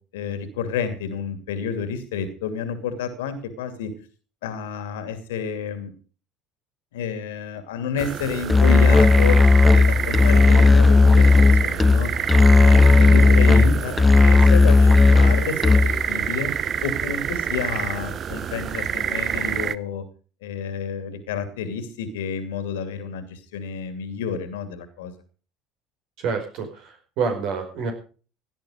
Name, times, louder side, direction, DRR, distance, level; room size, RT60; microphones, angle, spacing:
voice 1, 0.1-3.9 4.4-5.9 6.9-9.4 9.7-11.3 11.6-12.1 12.5-13.9 14.2-16.5 16.8-20.0 20.4-25.1, left 6 dB, 75° left, 10 dB, 2.5 m, -30 dB
sound 1, 8.0-19.8, right 8 dB, 40° right, 0.7 m, -27 dB
Musical instrument, 8.5-16.1, left 3 dB, 15° left, 0.6 m, -14 dB
voice 2, 26.2-27.9, right 5 dB, 60° right, 4 dB, 4.9 m, -27 dB
17.0 x 11.0 x 5.1 m, 0.38 s
hypercardioid pair, 65°, 0 cm